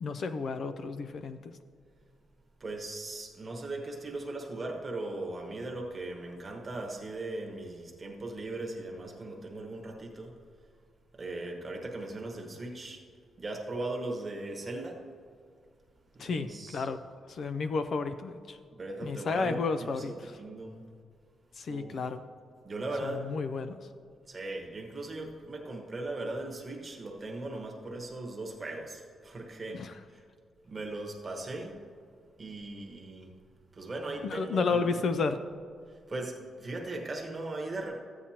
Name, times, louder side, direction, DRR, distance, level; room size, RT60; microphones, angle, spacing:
voice 1, 0.0-1.6 16.2-17.0 17.3-18.6 19.0-20.4 21.5-22.2 23.0-23.9 29.7-29.9 34.2-35.4, left 4 dB, 45° left, 10 dB, 0.3 m, -32 dB
voice 2, 2.6-10.3 11.1-13.0 13.4-15.0 16.1-16.9 18.7-20.8 21.7-22.0 22.6-23.3 24.3-29.8 30.1-30.2 30.6-31.8 32.4-33.3 33.7-35.0 35.9-37.9, right 2 dB, 20° right, 1 dB, 1.1 m, -38 dB
13.5 x 8.7 x 2.8 m, 2.2 s
wide cardioid pair, 175°, 0 cm